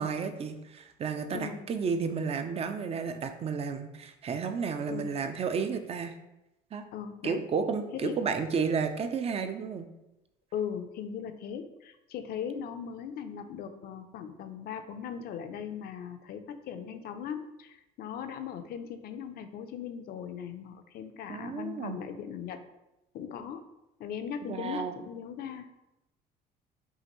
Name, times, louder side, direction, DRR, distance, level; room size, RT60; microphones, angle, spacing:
voice 1, 0.0-6.1 6.7-6.8 7.2-9.9 21.3-22.0 24.5-25.0, right 5 dB, 35° right, 8 dB, 0.4 m, -32 dB
voice 2, 1.3-1.6 4.9-5.2 6.9-7.4 7.9-8.1 10.5-22.6 23.1-23.6 24.0-25.7, left 8 dB, 65° left, 8 dB, 0.5 m, -39 dB
5.5 x 2.6 x 3.0 m, 0.92 s
cardioid pair, 110°, 17 cm